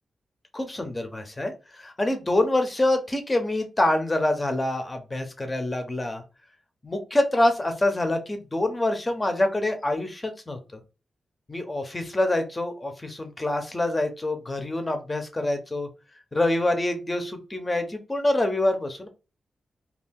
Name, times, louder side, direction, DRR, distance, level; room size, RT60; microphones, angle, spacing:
voice 1, 0.5-6.2 6.8-10.6 11.5-15.9 16.3-19.1, left 1 dB, 15° left, 6 dB, 0.6 m, -26 dB
2.6 x 2.4 x 3.5 m, 0.30 s
wide cardioid pair, 175°, 0 cm